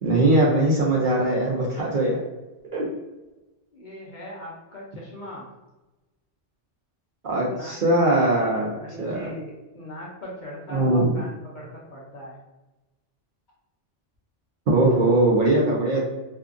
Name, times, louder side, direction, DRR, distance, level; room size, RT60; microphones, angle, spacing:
voice 1, 0.0-2.2 2.7-2.9 7.2-8.7 9.0-9.3 10.7-11.1 14.7-16.0, right 2 dB, 55° right, -3 dB, 0.6 m, -20 dB
voice 2, 3.7-5.5 7.3-7.8 8.7-12.3, equal, 50° left, -4 dB, 0.6 m, -40 dB
2.6 x 2.4 x 2.4 m, 1.1 s
omnidirectional pair, 1.2 m